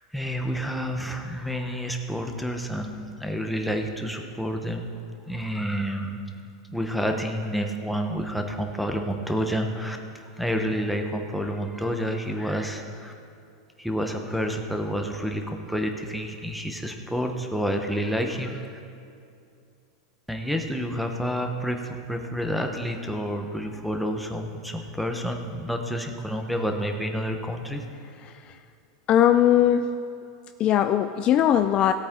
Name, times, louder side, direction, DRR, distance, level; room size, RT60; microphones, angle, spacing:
voice 1, 0.1-4.9 5.3-6.2 6.7-10.0 10.4-13.1 13.8-18.8 20.3-27.8, equal, ahead, 3 dB, 1.0 m, -29 dB
voice 2, 29.1-29.9 30.6-31.9, left 10 dB, 35° left, 9 dB, 0.4 m, -19 dB
17.0 x 8.4 x 3.8 m, 2.5 s
supercardioid pair, 135°, 3 cm